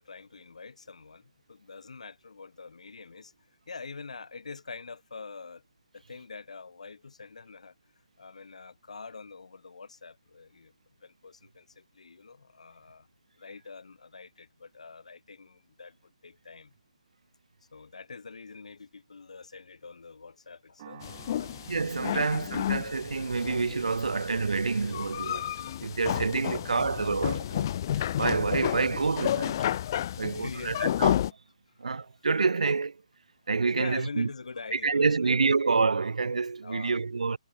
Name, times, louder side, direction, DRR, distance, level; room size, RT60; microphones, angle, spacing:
voice 1, 0.0-3.3 3.7-5.6 5.9-7.7 8.2-10.7 11.0-13.1 13.4-16.7 17.7-21.1 21.4-21.6 22.1-22.6 26.4-27.2 30.2-31.0 31.7-31.8 33.7-35.6 36.6-37.0, left 4 dB, 75° left, 6.7 m, -45 dB
sound 1, 20.8-29.3, right 12 dB, 35° right, 6.8 m, -56 dB
sound 2, 21.0-31.3, left 11 dB, 35° left, 0.3 m, -31 dB
voice 2, 21.7-27.7 28.2-29.6 30.2-31.1 31.8-33.0 33.5-34.3 34.7-37.4, right 4 dB, 85° right, 0.4 m, -28 dB
hypercardioid pair, 155°, 4 cm